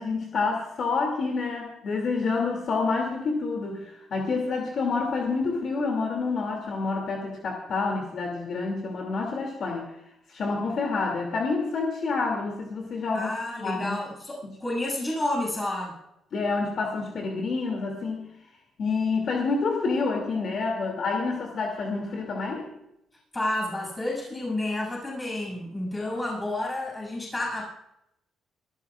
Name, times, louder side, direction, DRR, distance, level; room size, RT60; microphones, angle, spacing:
voice 1, 0.0-9.8 10.3-13.3 13.6-14.0 14.4-14.6 16.3-18.3 18.8-22.7, left 4 dB, 60° left, 1 dB, 2.6 m, -28 dB
voice 2, 13.1-16.0 23.3-27.7, left 1 dB, 20° left, -2 dB, 7.2 m, -30 dB
25.0 x 14.0 x 2.4 m, 0.83 s
cardioid pair, 90°, 0 cm